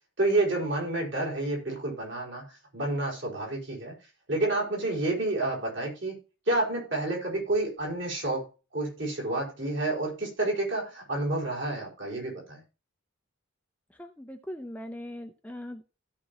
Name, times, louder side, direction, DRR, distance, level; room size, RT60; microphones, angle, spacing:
voice 1, 0.2-2.4 2.7-3.9 4.3-6.2 6.5-8.5 8.7-12.6, right 2 dB, 60° right, -3 dB, 4.9 m, -29 dB
voice 2, 14.0-15.8, left 1 dB, 5° left, 5 dB, 0.6 m, -40 dB
16.0 x 5.4 x 3.0 m, 0.31 s
head